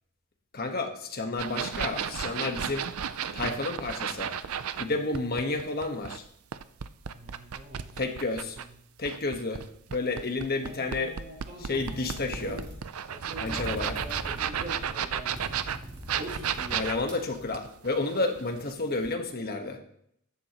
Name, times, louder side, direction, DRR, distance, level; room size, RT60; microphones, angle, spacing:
voice 1, 0.5-2.9 3.3-4.3 4.8-6.2 8.0-8.6 9.0-9.6 9.9-11.2 11.6-12.6 13.4-14.0 16.7-19.8, left 3 dB, 45° left, 5 dB, 1.4 m, -31 dB
sound 1, 1.4-4.9 5.1-8.7 9.0-18.7 19.0-19.1, right 8 dB, 85° right, 0.5 m, -33 dB
voice 2, 7.1-8.0 8.5-8.7 10.6-12.7 13.1-15.3 16.1-16.9, right 1 dB, 45° right, -3 dB, 5.5 m, -44 dB
sound 2, 11.7-17.9, equal, 25° right, 4.2 m, -42 dB
14.5 x 11.5 x 3.0 m, 0.69 s
head